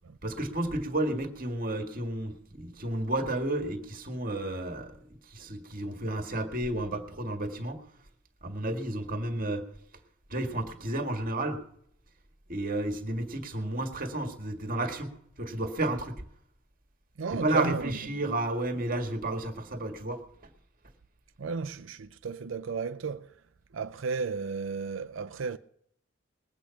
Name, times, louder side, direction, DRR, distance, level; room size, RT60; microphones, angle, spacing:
voice 1, 0.2-5.0 5.2-7.8 8.4-9.6 10.3-11.6 12.5-15.1 15.4-16.2 17.4-20.2, right 1 dB, 45° right, 1.8 m, -32 dB
voice 2, 17.2-18.0 21.4-23.4 23.7-25.6, right 5 dB, 80° right, 0.5 m, -33 dB
20.5 x 8.4 x 5.8 m
head